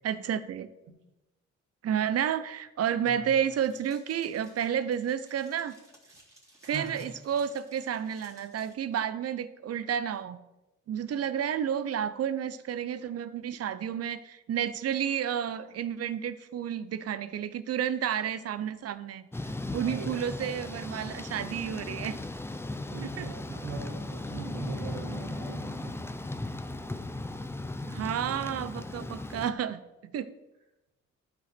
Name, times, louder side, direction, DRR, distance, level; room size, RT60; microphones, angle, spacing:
voice 1, 0.0-0.7 1.8-5.7 6.6-10.4 10.9-22.2 23.0-23.3 24.8-25.2 27.9-29.8 30.1-30.3, right 9 dB, 55° right, 14 dB, 0.7 m, -31 dB
sound 1, 3.4-8.7, right 1 dB, 10° right, 3.2 m, -59 dB
voice 2, 6.7-7.0 19.7-20.1 22.9-26.0, right 5 dB, 90° right, -1 dB, 2.0 m, -41 dB
Thunder / Rain, 19.3-29.5, left 2 dB, 10° left, 0.5 m, -37 dB
12.5 x 5.1 x 4.4 m, 0.98 s
cardioid pair, 90°, 30 cm